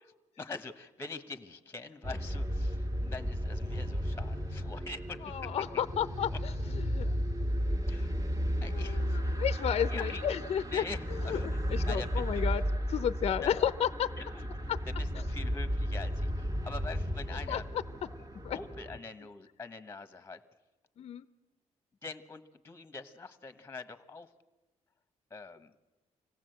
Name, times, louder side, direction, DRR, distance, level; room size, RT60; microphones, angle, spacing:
voice 1, 0.4-5.8 6.3-6.4 7.9-8.1 8.6-9.4 9.9-10.2 10.5-12.4 13.4-13.5 14.2-17.6 18.5-20.4 22.0-24.3 25.3-25.7, left 3 dB, 20° left, 10 dB, 1.1 m, -44 dB
sound 1, 2.0-19.0, equal, 30° right, 1.8 m, -34 dB
voice 2, 5.2-6.5 6.9-7.2 8.7-10.8 11.3-11.4 11.7-12.6 12.9-14.1 14.7-14.8 17.5-17.6 18.4-18.6 21.0-21.3, left 9 dB, 55° left, 13 dB, 0.7 m, -32 dB
25.5 x 17.5 x 7.9 m, 1.2 s
cardioid pair, 125°, 13 cm